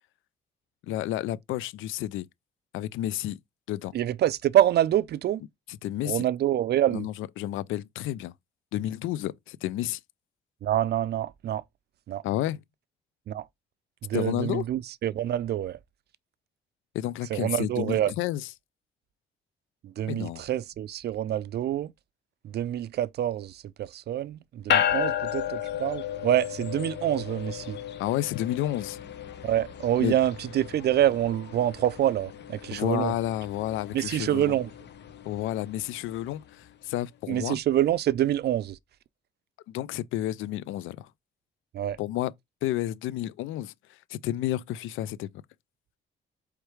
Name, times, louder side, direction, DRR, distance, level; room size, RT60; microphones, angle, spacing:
voice 1, 0.9-2.3 2.7-3.4 3.7-3.9 5.7-6.2 6.9-8.3 8.7-10.0 12.2-12.6 14.1-14.6 16.9-18.5 20.1-20.5 28.0-29.0 30.0-30.2 32.7-34.6 35.3-37.6 39.7-41.1 42.0-42.3 42.6-43.7 44.1-45.3, left 13 dB, 85° left, 0.4 m, -31 dB
voice 2, 3.9-5.4 6.0-7.1 10.6-11.6 12.1-12.2 13.3-13.4 14.0-15.8 17.3-18.1 19.8-21.9 22.4-27.8 29.4-33.1 33.9-34.7 37.3-38.8 41.7-42.0, right 12 dB, 55° right, 0.4 m, -26 dB
sound 1, 24.7-36.3, left 10 dB, 60° left, 0.9 m, -34 dB
4.8 x 3.2 x 3.1 m
cardioid pair, 90°, 20 cm